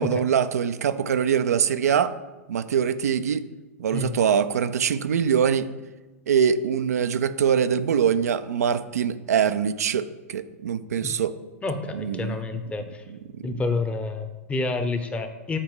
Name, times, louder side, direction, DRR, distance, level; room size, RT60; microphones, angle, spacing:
voice 1, 0.0-2.1 2.5-3.4 3.8-5.7 6.3-11.3 11.9-12.4 13.1-13.2 13.5-13.6, right 7 dB, 85° right, 11 dB, 0.5 m, -23 dB
voice 2, 11.6-13.0 13.4-15.6, left 3 dB, 15° left, 7 dB, 0.8 m, -29 dB
7.4 x 4.5 x 4.8 m, 1.2 s
hypercardioid pair, 110°, 8 cm